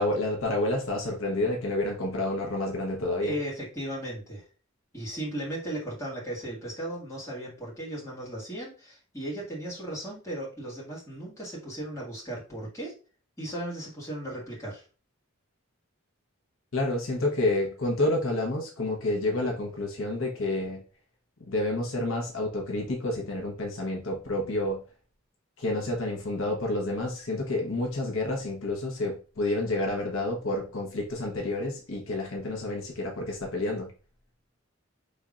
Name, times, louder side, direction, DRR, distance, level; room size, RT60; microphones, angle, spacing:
voice 1, 0.0-3.3 16.7-20.8 21.5-24.8 25.6-33.9, left 2 dB, 70° left, 0 dB, 1.0 m, -29 dB
voice 2, 3.2-4.5 4.9-12.9 13.4-14.8, right 1 dB, 15° left, -5 dB, 1.9 m, -36 dB
5.3 x 3.4 x 2.4 m, 0.35 s
head